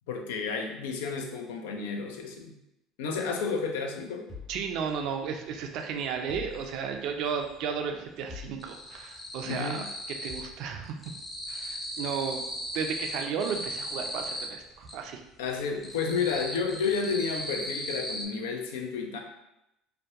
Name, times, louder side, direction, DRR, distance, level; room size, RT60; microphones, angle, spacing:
voice 1, 0.1-2.6 3.0-4.3 9.4-9.9 15.4-19.2, left 5 dB, 75° left, 3 dB, 0.3 m, -31 dB
sound 1, 4.3-5.4 6.3-7.2 8.3-9.0 10.3-10.8, left 6 dB, 40° left, 1.3 m, -46 dB
voice 2, 4.5-9.9 10.2-11.0 11.5-12.5 12.7-15.2, right 6 dB, 60° right, 4 dB, 0.3 m, -34 dB
sound 2, 5.0-5.1 5.4-6.7 7.0-7.7 7.9-10.6 10.8-15.0 15.4-18.3, equal, 20° left, 0.5 m, -37 dB
2.6 x 2.1 x 2.4 m, 0.88 s
hypercardioid pair, 70°, 0 cm